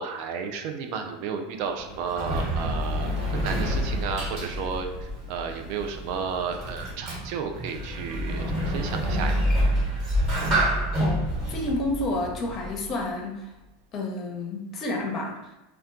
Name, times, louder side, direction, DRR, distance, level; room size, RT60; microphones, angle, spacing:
voice 1, 0.0-9.4, right 6 dB, 60° right, 5 dB, 0.4 m, -33 dB
Sliding door, 1.6-13.0, equal, 45° right, 1.4 m, -28 dB
voice 2, 11.0-13.5 13.9-15.5, left 2 dB, 40° left, 1 dB, 0.7 m, -30 dB
2.2 x 2.2 x 3.7 m, 1.0 s
hypercardioid pair, 95°, 0 cm